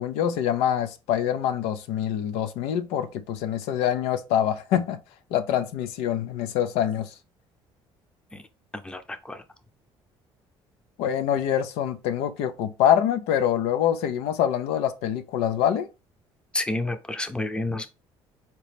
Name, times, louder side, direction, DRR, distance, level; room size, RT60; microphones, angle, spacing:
voice 1, 0.0-5.0 5.3-7.1 11.0-15.9, left 10 dB, 90° left, 0.5 m, -25 dB
voice 2, 8.8-9.4 16.5-17.9, left 2 dB, 10° left, 0.6 m, -30 dB
4.1 x 2.9 x 3.3 m
cardioid pair, 95°, 10 cm